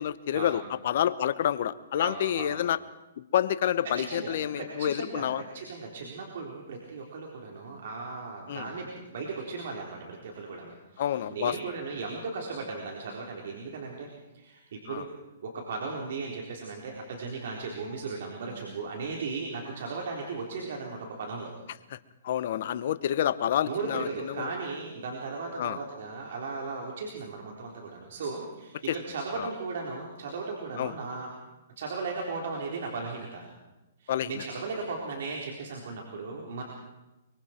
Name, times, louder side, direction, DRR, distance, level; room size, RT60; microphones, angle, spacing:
voice 1, 0.0-2.8 3.2-5.4 8.5-8.7 11.0-11.5 14.9-15.0 22.2-24.5 25.6-25.8 28.9-29.0 29.3-29.5 30.8-30.9 34.1-34.3, left 10 dB, 60° left, 14 dB, 1.1 m, -28 dB
voice 2, 2.0-2.5 3.8-14.1 14.3-15.2 15.4-21.5 23.7-31.4 31.8-33.4 34.0-36.6, right 4 dB, 65° right, 0 dB, 4.0 m, -36 dB
24.0 x 24.0 x 4.5 m, 1.0 s
hypercardioid pair, 140°, 0 cm